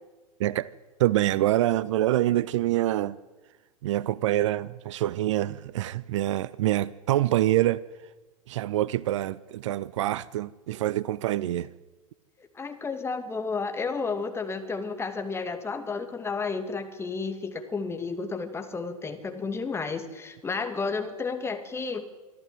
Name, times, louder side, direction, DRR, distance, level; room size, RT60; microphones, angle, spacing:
voice 1, 1.0-3.2 3.8-7.8 8.5-11.7, right 14 dB, 55° right, 0.6 m, -25 dB
voice 2, 12.4-22.0, left 4 dB, 15° left, 2.4 m, -32 dB
25.0 x 13.5 x 9.2 m
figure-of-eight pair, 95°, 18 cm